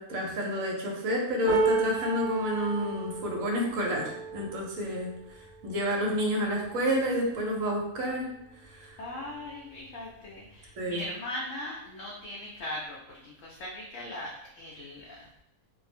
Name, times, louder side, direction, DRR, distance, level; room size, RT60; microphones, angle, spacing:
voice 1, 0.0-5.1 5.6-8.3 8.8-8.9 10.8-11.0, equal, 70° right, -1 dB, 1.0 m, -29 dB
sound 1, 1.5-7.6 8.2-8.4 8.7-9.5 10.4-10.5, right 4 dB, 40° right, 1.1 m, -33 dB
voice 2, 9.0-15.3, left 1 dB, 70° left, -4 dB, 0.8 m, -39 dB
2.5 x 2.0 x 3.3 m, 0.81 s
omnidirectional pair, 1.6 m